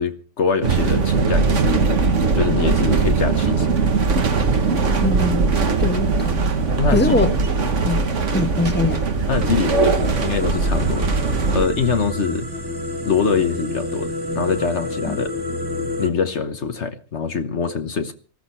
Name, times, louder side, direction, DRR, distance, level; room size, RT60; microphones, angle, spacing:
voice 1, 0.0-1.9 2.3-3.7 6.8-7.7 9.3-11.2 11.5-12.5 13.0-15.3 16.0-18.1, left 5 dB, 60° left, 1.3 m, -24 dB
sound 1, 0.6-11.7, right 4 dB, 65° right, 1.8 m, -20 dB
voice 2, 5.0-5.5 5.8-6.4 6.9-7.3 7.8-8.0 8.3-9.1 15.1-15.2, left 3 dB, 10° left, 1.3 m, -22 dB
sound 2, 9.3-16.1, left 1 dB, 15° right, 1.7 m, -29 dB
19.0 x 14.5 x 4.4 m
omnidirectional pair, 1.4 m